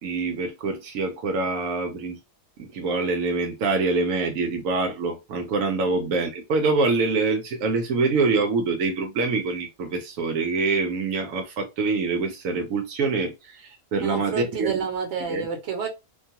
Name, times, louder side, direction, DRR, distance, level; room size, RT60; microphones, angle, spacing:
voice 1, 0.0-2.2 2.6-14.7 15.3-15.5, right 3 dB, 85° right, 1.0 m, -25 dB
voice 2, 14.0-15.9, right 6 dB, 65° right, 1.1 m, -29 dB
2.5 x 2.3 x 2.7 m
omnidirectional pair, 1.3 m